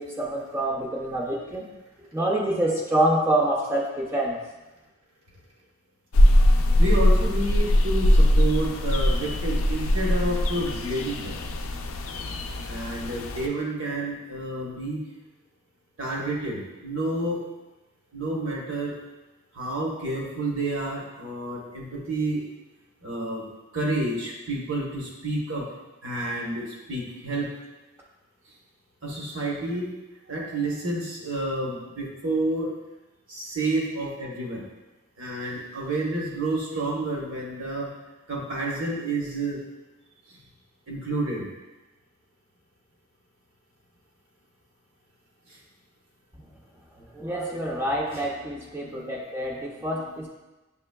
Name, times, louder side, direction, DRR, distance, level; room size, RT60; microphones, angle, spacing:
voice 1, 0.0-1.6 2.1-4.4 47.2-50.3, right 1 dB, 10° right, -2 dB, 0.4 m, -26 dB
sound 1, 6.1-13.5, left 1 dB, 75° left, 0.4 m, -21 dB
voice 2, 6.8-11.4 12.6-15.0 16.0-17.4 18.1-18.9 19.5-22.5 23.0-23.5 23.7-25.7 26.0-27.5 29.0-29.9 30.3-32.7 33.3-34.6 35.2-37.9 38.3-39.6 40.3-40.4 40.9-41.4 48.1-49.1 49.9-50.3, right 2 dB, 70° right, -3 dB, 1.1 m, -30 dB
6.6 x 3.0 x 2.2 m, 1.1 s
head